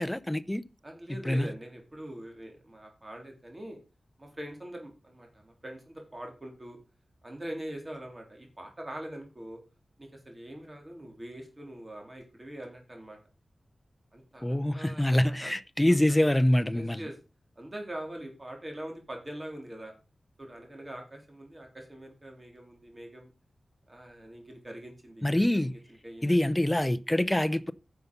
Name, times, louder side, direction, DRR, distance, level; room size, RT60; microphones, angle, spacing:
voice 1, 0.0-0.6 1.2-1.5 14.4-17.1 25.2-25.7 26.2-27.7, left 1 dB, 10° left, 0.6 m, -25 dB
voice 2, 0.8-3.8 4.2-6.8 7.2-9.6 10.0-13.2 14.1-15.1 15.4-15.5 16.7-17.1 17.6-19.9 20.4-23.3 23.9-25.2 25.5-25.7 26.0-26.5, right 1 dB, 25° right, 3.7 m, -43 dB
10.5 x 6.9 x 5.5 m
wide cardioid pair, 90°, 0 cm